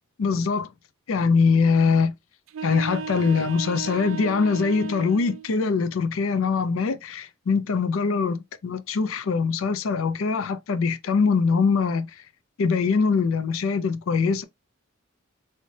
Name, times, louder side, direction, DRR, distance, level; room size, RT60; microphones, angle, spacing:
voice 1, 0.2-0.7 1.1-2.1 2.6-12.1 12.6-14.4, left 5 dB, 75° left, 0.4 m, -23 dB
sound 1, 2.5-5.5, right 6 dB, 75° right, 0.4 m, -35 dB
3.2 x 3.2 x 2.7 m
head